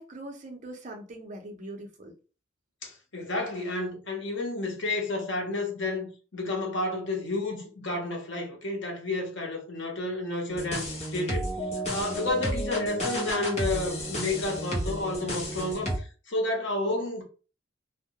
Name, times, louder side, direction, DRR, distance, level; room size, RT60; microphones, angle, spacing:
voice 1, 0.0-2.1, right 1 dB, 40° right, 0.6 m, -42 dB
voice 2, 2.8-6.1 6.3-10.9 11.1-11.5 11.9-17.2, left 2 dB, 75° left, 0.8 m, -31 dB
sound 1, 10.5-16.0, equal, 35° left, 0.8 m, -32 dB
2.2 x 2.1 x 2.8 m
head